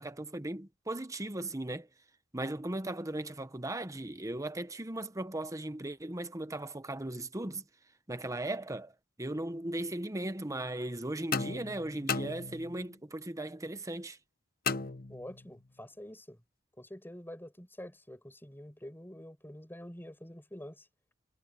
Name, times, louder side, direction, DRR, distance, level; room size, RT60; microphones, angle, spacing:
voice 1, 0.0-1.9 2.3-7.6 8.1-8.9 9.2-14.2, right 1 dB, 15° right, 1.1 m, -37 dB
sound 1, 11.3-13.0 14.7-15.6, left 5 dB, 45° left, 1.1 m, -36 dB
voice 2, 15.1-16.4 16.8-20.9, left 1 dB, 10° left, 5.9 m, -47 dB
head